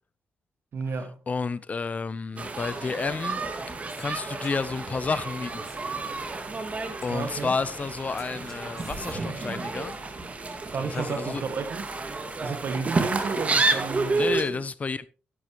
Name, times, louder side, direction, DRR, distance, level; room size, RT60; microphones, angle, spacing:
voice 1, 0.7-1.2 7.1-7.5 10.7-11.8 12.4-14.6, right 5 dB, 65° right, 1.8 m, -32 dB
voice 2, 1.3-3.4 4.0-5.7 7.0-10.0 10.8-11.4 14.2-15.1, left 4 dB, 35° left, 0.7 m, -31 dB
Female speech woman speaking, 2.3-7.7 8.2-11.3, left 1 dB, 10° left, 5.1 m, -51 dB
sound 1, 2.4-14.4, right 3 dB, 35° right, 1.9 m, -30 dB
12.5 x 11.0 x 3.0 m
cardioid pair, 95°, 4 cm